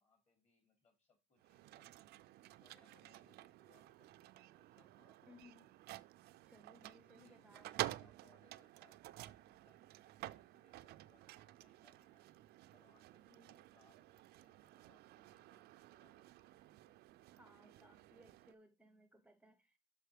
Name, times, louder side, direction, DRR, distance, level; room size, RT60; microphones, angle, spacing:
voice 1, 0.0-2.1 2.5-5.6 6.9-17.0 17.8-18.4, left 4 dB, 40° left, 3.3 m, -76 dB
sound 1, 1.4-18.5, right 16 dB, 75° right, 0.4 m, -51 dB
voice 2, 5.2-5.7 6.5-8.1 13.3-13.6 17.3-19.8, left 1 dB, 5° right, 0.6 m, -64 dB
6.2 x 5.6 x 4.9 m
cardioid pair, 110°, 17 cm